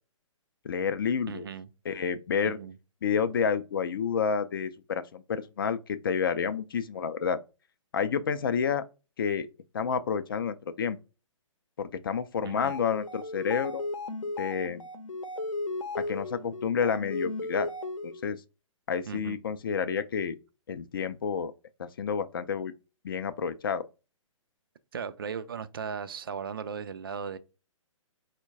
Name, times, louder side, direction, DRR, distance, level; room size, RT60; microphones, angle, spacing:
voice 1, 0.6-1.4 1.9-2.6 3.0-7.4 7.9-8.8 9.2-9.5 9.7-11.0 11.8-13.8 14.4-14.8 16.0-17.7 18.0-18.4 18.9-20.4 20.7-21.5 21.8-22.7 23.0-23.8, left 6 dB, 40° left, 0.4 m, -29 dB
voice 2, 1.3-1.7 2.4-2.8 12.4-12.8 19.1-19.4 24.9-27.4, right 6 dB, 45° right, 0.4 m, -37 dB
sound 1, 12.5-18.3, left 2 dB, 75° left, 0.7 m, -36 dB
4.3 x 2.1 x 3.6 m
figure-of-eight pair, 130°, 17 cm